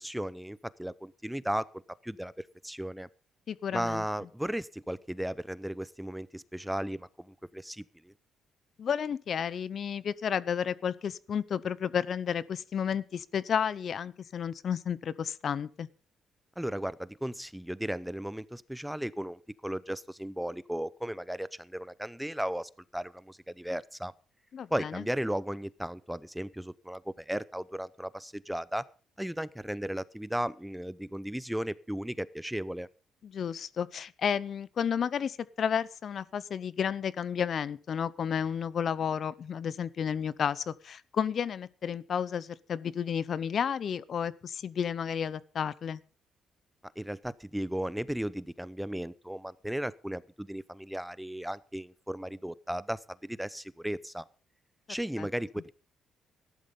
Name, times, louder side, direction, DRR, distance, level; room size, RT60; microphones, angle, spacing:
voice 1, 0.0-1.7 2.0-3.1 3.7-8.1 16.6-24.1 24.7-28.8 29.2-32.9 47.0-54.2 54.9-55.7, equal, 5° right, 18 dB, 0.6 m, -35 dB
voice 2, 3.5-4.0 8.8-15.9 24.5-25.0 33.2-46.0 55.2-55.3, left 7 dB, 55° left, 19 dB, 0.7 m, -32 dB
14.0 x 11.5 x 5.3 m, 0.38 s
cardioid pair, 90°, 0 cm